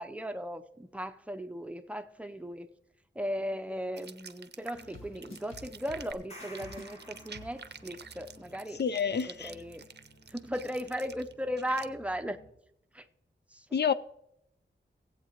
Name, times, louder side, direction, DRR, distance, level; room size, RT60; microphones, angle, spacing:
voice 1, 0.0-2.7 3.1-8.8 9.3-9.9 10.3-12.4 12.9-13.1 13.5-13.7, equal, 5° right, 0.6 m, -37 dB
sound 1, 3.9-11.9, right 6 dB, 60° right, 0.6 m, -49 dB
sound 2, 4.7-12.5, equal, 85° left, 1.9 m, -53 dB
sound 3, 6.1-8.1, equal, 35° left, 3.6 m, -51 dB
voice 2, 8.8-9.5 13.7-13.9, left 7 dB, 60° left, 0.4 m, -28 dB
18.0 x 8.1 x 2.9 m
wide cardioid pair, 105°, 20 cm